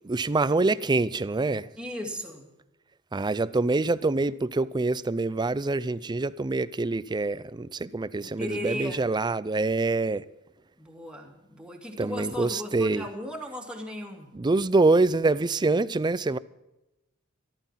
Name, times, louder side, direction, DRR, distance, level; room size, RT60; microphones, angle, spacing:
voice 1, 0.0-1.7 3.1-10.2 12.0-13.1 14.3-16.4, right 3 dB, 20° right, 0.4 m, -25 dB
voice 2, 1.8-2.5 8.2-9.1 10.8-14.3, left 1 dB, 5° right, 2.3 m, -36 dB
14.0 x 13.0 x 5.7 m
head